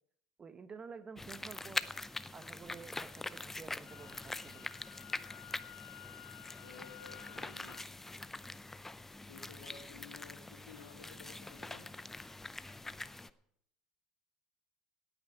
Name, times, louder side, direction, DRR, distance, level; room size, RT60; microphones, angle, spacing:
voice 1, 0.4-1.9 2.3-4.7, right 5 dB, 30° right, 12 dB, 1.1 m, -51 dB
sound 1, 1.2-13.3, left 2 dB, 10° left, 0.6 m, -44 dB
Wind instrument woodwind instrument, 3.8-7.8, left 16 dB, 70° left, 1.3 m, -54 dB
voice 2, 6.6-7.8 9.3-11.8, left 5 dB, 90° left, 2 dB, 2.5 m, -54 dB
17.0 x 9.0 x 4.8 m, 0.73 s
hypercardioid pair, 85°, 3 cm